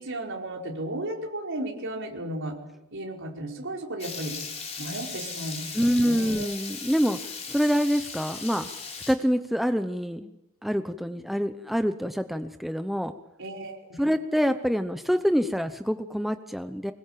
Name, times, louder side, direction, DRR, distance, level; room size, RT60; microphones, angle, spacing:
voice 1, 0.0-2.6 2.9-4.4 4.8-6.5 13.4-14.1, right 1 dB, 60° right, 0 dB, 5.0 m, -34 dB
Water tap faucet / Liquid, 4.0-9.1, left 5 dB, 30° left, 4.3 m, -37 dB
voice 2, 5.7-8.7 9.1-10.3 10.6-13.1 14.0-16.9, equal, ahead, 8 dB, 0.8 m, -26 dB
24.5 x 21.5 x 7.5 m, 0.94 s
head